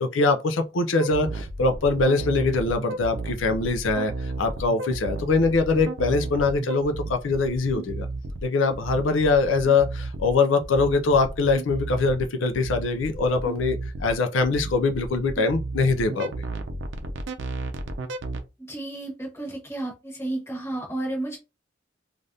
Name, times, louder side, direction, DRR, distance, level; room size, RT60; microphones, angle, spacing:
voice 1, 0.0-8.1 8.4-16.3, left 3 dB, 85° left, 0.4 m, -23 dB
sound 1, 1.0-18.4, right 2 dB, 70° right, 0.5 m, -33 dB
voice 2, 18.6-21.4, right 2 dB, 15° left, 1.1 m, -32 dB
3.3 x 2.5 x 2.6 m
head